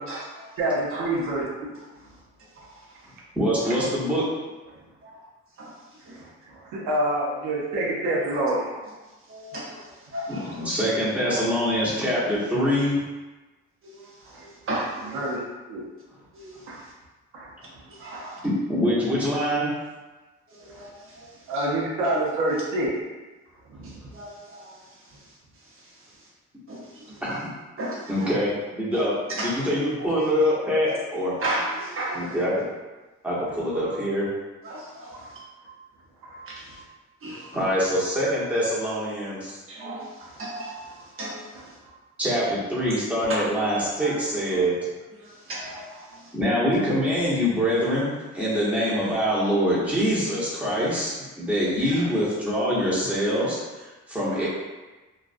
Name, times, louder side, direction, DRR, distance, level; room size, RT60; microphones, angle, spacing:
voice 1, 0.1-0.5 0.9-1.1 2.4-3.0 3.6-3.8 5.0-5.2 5.6-6.2 8.1-8.3 8.8-8.9 9.2-10.7 13.8-15.3 16.3-16.9 17.9-18.4 20.5-21.7 22.5-22.6 23.8-26.3 26.7-27.4 27.8-28.3 28.9-29.0 29.3-29.7 30.0-30.1 30.8-31.0 31.4-32.4 34.6-35.4 36.5-36.8 37.2-37.5 39.7-41.8 44.0-44.2 45.2-46.3, right 1 dB, 45° right, -4 dB, 0.8 m, -36 dB
voice 2, 0.6-1.7 6.1-8.7 11.3-11.5 14.3-14.4 15.1-15.4 15.7-15.8 16.7-16.8 17.3-17.5 18.1-18.3 20.7-20.8 21.5-22.9 23.7-23.9 33.7-33.9 35.1-35.7 36.2-36.8 37.4-37.7 40.2-40.3 40.9-41.0 51.8-52.1 54.3-54.5, right 1 dB, 90° right, -4 dB, 0.6 m, -28 dB
voice 3, 3.3-4.2 10.3-12.9 18.4-19.7 27.2-27.5 28.1-31.4 32.1-32.6 33.2-34.3 37.5-39.6 42.2-44.7 46.3-54.5, equal, 5° right, -8 dB, 0.8 m, -24 dB
2.3 x 2.2 x 2.4 m, 1.2 s
cardioid pair, 90°, 30 cm